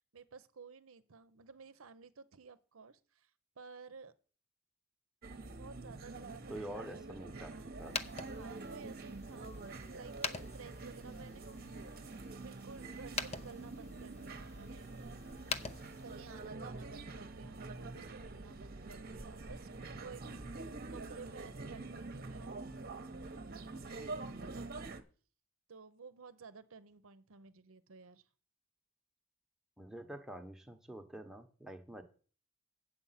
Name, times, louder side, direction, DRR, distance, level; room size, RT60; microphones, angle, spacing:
voice 1, 0.1-3.3 3.6-4.1 5.5-7.8 8.4-11.4 11.7-14.9 16.0-20.2 20.5-22.6 23.3-24.9 25.7-28.3, right 5 dB, 70° right, 14 dB, 0.8 m, -55 dB
sound 1, 5.2-25.0, right 3 dB, 45° right, 0.9 m, -46 dB
voice 2, 6.5-8.0 9.7-9.8 29.8-32.0, right 1 dB, 5° right, 4 dB, 1.0 m, -47 dB
sound 2, 7.8-16.5, left 4 dB, 30° left, 0.6 m, -45 dB
8.6 x 7.7 x 5.7 m, 0.41 s
head